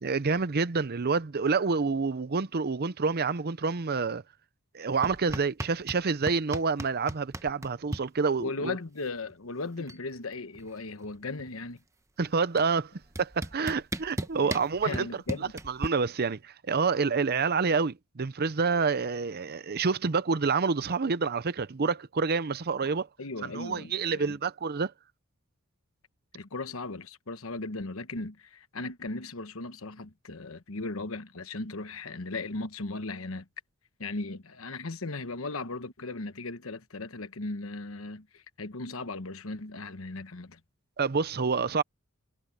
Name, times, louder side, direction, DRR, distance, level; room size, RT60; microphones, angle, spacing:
voice 1, 0.0-4.2 4.7-8.8 12.2-12.9 13.2-15.1 15.7-23.1 23.4-24.9 41.0-41.8, right 4 dB, 45° right, 0.7 m, -28 dB
sound 1, 5.0-6.0 6.3-8.0 9.3-9.4 9.6-10.1 10.3-11.7 12.6-12.7 13.2-15.9, right 1 dB, 15° right, 1.0 m, -36 dB
voice 2, 8.4-11.8 14.4-14.5 14.8-15.5 23.2-24.4 26.3-33.5 34.0-40.6, left 3 dB, 70° left, 1.2 m, -37 dB
head